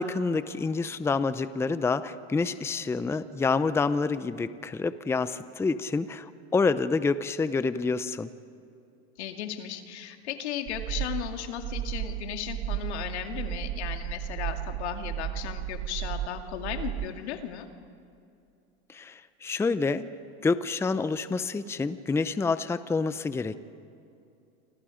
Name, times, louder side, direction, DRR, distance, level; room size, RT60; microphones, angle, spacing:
voice 1, 0.0-8.3 18.9-20.0 20.4-23.6, left 4 dB, 10° left, 13 dB, 0.6 m, -28 dB
voice 2, 9.2-17.7, left 10 dB, 85° left, 5 dB, 2.3 m, -36 dB
sound 1, 10.7-17.1, right 12 dB, 40° right, 1.1 m, -34 dB
28.5 x 26.0 x 5.1 m, 2.6 s
supercardioid pair, 130°, 32 cm